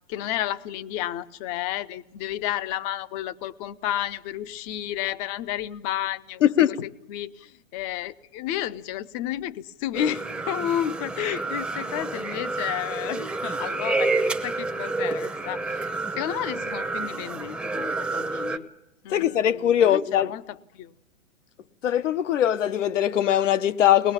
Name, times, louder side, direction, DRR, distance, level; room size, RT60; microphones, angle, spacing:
voice 1, 0.1-6.5 6.8-15.9 16.1-18.7 19.0-20.9, left 12 dB, 30° left, 0.7 m, -32 dB
voice 2, 6.4-6.8 19.1-20.3 21.8-24.1, left 10 dB, 70° left, 0.9 m, -21 dB
sound 1, 9.9-18.6, right 3 dB, 5° right, 0.8 m, -29 dB
23.0 x 20.0 x 7.1 m
hypercardioid pair, 125°, 39 cm